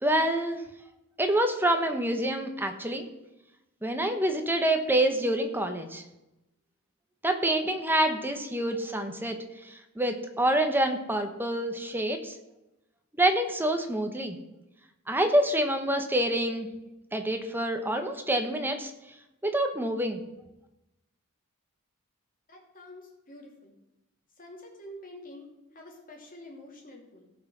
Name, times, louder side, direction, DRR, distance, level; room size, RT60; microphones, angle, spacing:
voice 1, 0.0-0.6 1.2-3.0 3.8-6.0 7.2-9.4 9.6-12.3 13.2-14.4 15.1-16.7 17.1-18.9 19.4-20.2, right 1 dB, 10° right, 6 dB, 1.1 m, -27 dB
voice 2, 22.5-23.7 24.4-27.3, left 1 dB, 40° left, 0 dB, 2.8 m, -47 dB
16.5 x 5.6 x 6.3 m, 0.94 s
head